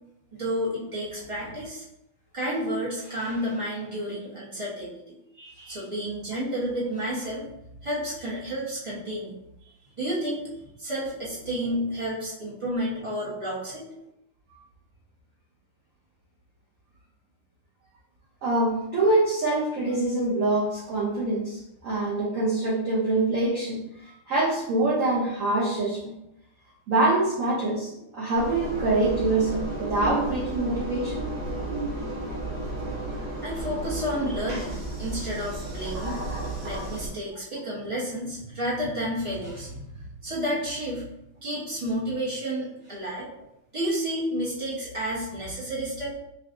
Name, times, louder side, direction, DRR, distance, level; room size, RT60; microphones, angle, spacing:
voice 1, 0.3-1.8 2.3-5.2 5.7-7.5 7.8-9.4 10.0-10.5 10.8-13.9 32.8-32.9 33.4-34.7 35.0-36.2 36.6-41.0 41.4-43.3 43.7-46.1, equal, 30° right, -7 dB, 0.5 m, -31 dB
voice 2, 5.4-5.8 18.4-26.1 26.9-31.3, right 2 dB, 60° right, -6 dB, 0.8 m, -25 dB
Engine, 28.3-37.1, right 2 dB, 90° right, 2.1 m, -32 dB
5.6 x 2.3 x 2.5 m, 0.83 s
omnidirectional pair, 2.3 m